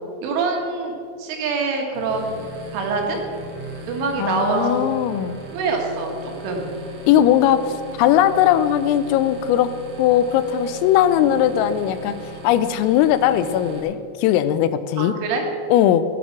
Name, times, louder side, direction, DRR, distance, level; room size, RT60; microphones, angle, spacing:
voice 1, 0.2-2.4 2.7-3.2 3.9-4.8 5.5-6.7 11.2-11.4 15.0-15.4, right 4 dB, 75° right, 2 dB, 4.0 m, -25 dB
sound 1, 1.9-13.8, right 1 dB, 55° right, 2.0 m, -38 dB
voice 2, 4.2-5.4 7.0-9.7 10.0-12.2 12.4-15.1 15.7-16.0, left 11 dB, 85° left, 13 dB, 3.3 m, -18 dB
16.0 x 7.9 x 6.1 m, 2.5 s
omnidirectional pair, 5.9 m